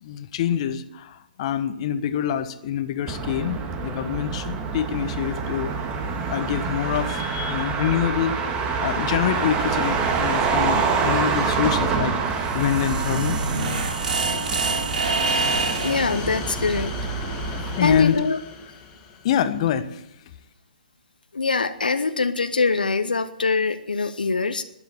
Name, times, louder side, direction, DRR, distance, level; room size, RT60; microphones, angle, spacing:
voice 1, 0.0-13.4 14.5-15.1 17.7-18.2 19.2-20.1, left 9 dB, 45° left, 11 dB, 1.2 m, -26 dB
Motor vehicle (road), 3.1-18.0, right 5 dB, 25° right, 1.8 m, -26 dB
sound 1, 12.3-16.2, right 3 dB, 70° right, 2.8 m, -26 dB
sound 2, 15.3-19.6, left 5 dB, 25° left, 2.4 m, -36 dB
voice 2, 15.8-16.9 17.8-18.4 21.3-24.6, left 4 dB, 80° left, 9 dB, 1.0 m, -23 dB
12.5 x 10.5 x 9.9 m, 0.83 s
figure-of-eight pair, 130°, 5 cm